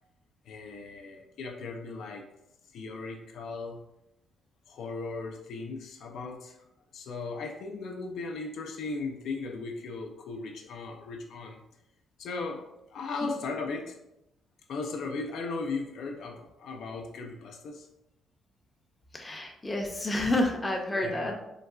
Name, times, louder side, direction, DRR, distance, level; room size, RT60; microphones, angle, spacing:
voice 1, 0.5-2.2 2.7-3.8 4.7-6.5 6.9-11.6 12.2-13.9 14.7-17.9 20.9-21.4, left 3 dB, 75° left, 2 dB, 0.3 m, -37 dB
voice 2, 19.1-21.4, left 1 dB, 20° left, 2 dB, 0.5 m, -29 dB
3.7 x 2.2 x 2.4 m, 0.88 s
cardioid pair, 90°, 0 cm